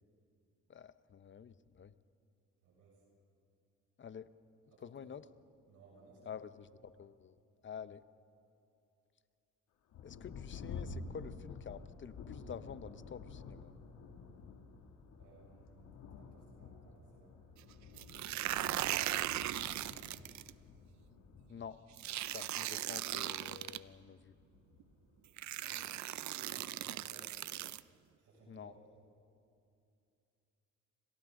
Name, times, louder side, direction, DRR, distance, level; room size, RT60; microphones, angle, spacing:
voice 1, 0.7-1.9 4.0-4.3 4.8-5.2 6.3-7.4 7.6-8.0 10.0-13.7 21.5-21.8 22.3-24.4 28.5-28.7, left 7 dB, 40° left, 14 dB, 0.8 m, -49 dB
voice 2, 2.6-3.0 4.7-5.1 5.7-6.4 15.2-17.3 19.2-20.4 25.6-27.3 28.2-28.9, right 3 dB, 85° right, -4 dB, 6.4 m, -61 dB
Thunder, 9.9-26.0 26.7-26.8 27.4-27.8, left 4 dB, 85° left, 2.5 m, -51 dB
sound 1, 18.0-20.5 22.0-23.8 24.8-24.9 25.4-27.8, right 14 dB, 65° right, 0.6 m, -38 dB
28.5 x 25.0 x 3.8 m, 2.6 s
cardioid pair, 90°, 30 cm